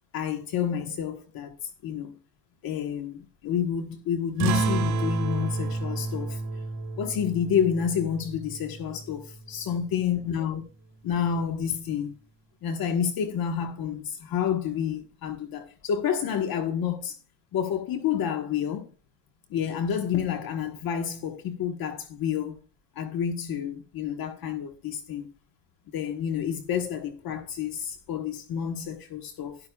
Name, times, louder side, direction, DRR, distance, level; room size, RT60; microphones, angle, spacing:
voice 1, 0.1-1.5 1.8-2.2 2.6-6.4 7.0-10.6 11.0-12.1 12.6-17.1 17.5-18.9 19.5-22.6 22.9-25.3 25.9-29.6, left 8 dB, 55° left, 1.4 m, -29 dB
sound 1, 4.4-9.4, right 3 dB, 55° right, 2.2 m, -30 dB
12.0 x 11.5 x 2.3 m
cardioid pair, 120°, 43 cm